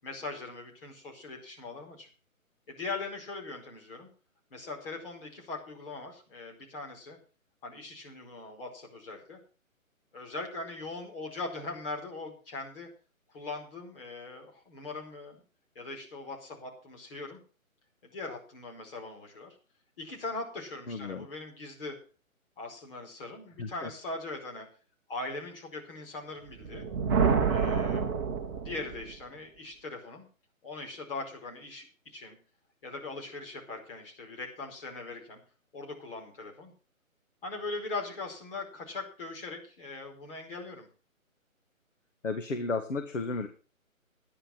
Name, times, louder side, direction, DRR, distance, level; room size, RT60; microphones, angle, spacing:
voice 1, 0.0-2.1 2.7-4.1 4.5-7.2 7.6-9.4 10.1-12.9 13.3-15.4 15.7-17.4 18.0-19.6 20.0-22.0 22.6-24.7 25.1-26.8 27.5-28.2 28.6-30.3 30.6-32.4 32.8-35.4 35.7-36.7 37.4-40.9, left 3 dB, 40° left, 0 dB, 4.9 m, -40 dB
voice 2, 20.9-21.3 23.6-23.9 42.2-43.5, left 3 dB, 60° left, 7 dB, 1.6 m, -33 dB
Thunder, 26.5-29.2, right 6 dB, 15° right, 1.0 m, -28 dB
11.5 x 10.0 x 6.1 m, 0.37 s
figure-of-eight pair, 145°, 42 cm